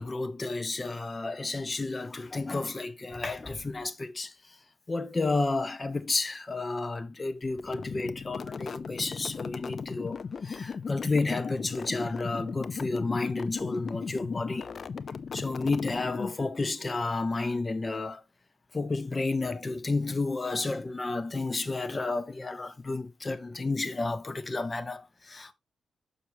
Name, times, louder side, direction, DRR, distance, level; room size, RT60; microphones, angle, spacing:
voice 1, 0.0-4.3 4.9-14.7 15.3-18.2 18.7-25.5, left 3 dB, 30° left, 1.1 m, -31 dB
sound 1, 7.6-16.6, left 5 dB, 55° left, 0.5 m, -37 dB
6.5 x 6.5 x 3.1 m
cardioid pair, 80°, 0 cm